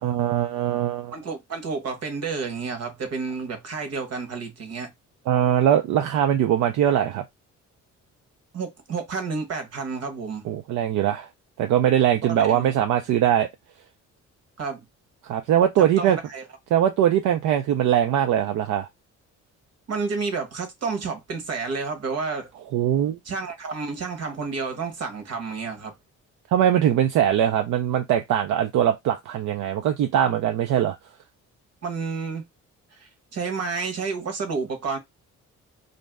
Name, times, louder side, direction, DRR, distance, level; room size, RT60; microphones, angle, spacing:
voice 1, 0.0-1.1 5.3-7.2 10.5-11.3 11.6-13.5 15.3-16.2 16.7-18.9 22.7-23.2 26.5-31.0, right 10 dB, 75° right, 0.5 m, -21 dB
voice 2, 1.1-4.9 8.5-10.4 12.2-12.7 14.6-14.8 15.8-16.4 19.9-22.5 23.2-25.9 31.8-32.4 32.9-35.0, right 4 dB, 55° right, 1.1 m, -30 dB
2.6 x 2.1 x 3.3 m
cardioid pair, 90°, 30 cm